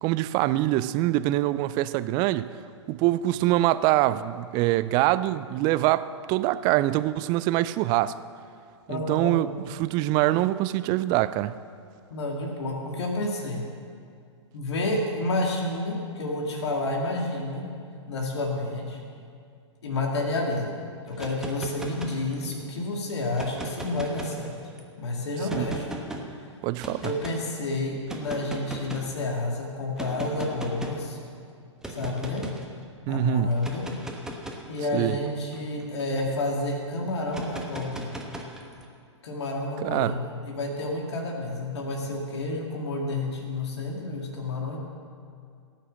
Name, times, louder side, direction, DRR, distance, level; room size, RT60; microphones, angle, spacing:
voice 1, 0.0-2.5 2.9-8.2 8.9-9.5 9.8-11.6 25.6-25.7 26.6-27.1 33.1-33.5 34.9-35.2 39.8-40.2, right 16 dB, 25° right, 0.4 m, -24 dB
voice 2, 8.9-9.4 12.1-13.7 14.5-17.7 18.1-19.0 19.8-20.8 21.1-24.5 25.0-26.0 26.4-26.5 27.0-31.2 31.9-32.5 33.1-33.9 34.7-38.1 39.2-44.8, left 2 dB, 60° left, 2.2 m, -30 dB
sound 1, 21.1-22.6 23.3-24.8 25.5-26.2 26.8-27.4 28.1-29.2 30.0-31.1 31.8-32.7 33.5-36.3 37.3-38.9, right 1 dB, 5° right, 1.2 m, -38 dB
17.0 x 6.6 x 7.4 m
figure-of-eight pair, 120°, 16 cm